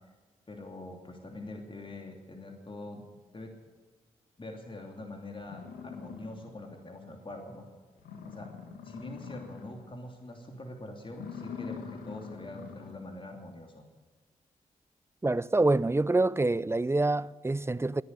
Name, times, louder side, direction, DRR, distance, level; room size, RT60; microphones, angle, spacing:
voice 1, 0.5-3.0 3.3-3.5 4.4-7.7 8.2-8.5 8.8-13.8, left 2 dB, 35° left, 2.8 m, -44 dB
sound 1, 4.9-5.0 5.4-6.8 7.2-7.3 7.7-7.8 8.0-9.9 10.2-10.6 11.1-13.1, left 6 dB, 85° left, 1.8 m, -44 dB
voice 2, 15.2-18.0, right 2 dB, 15° right, 0.5 m, -26 dB
16.0 x 10.5 x 8.3 m
supercardioid pair, 40°, 15 cm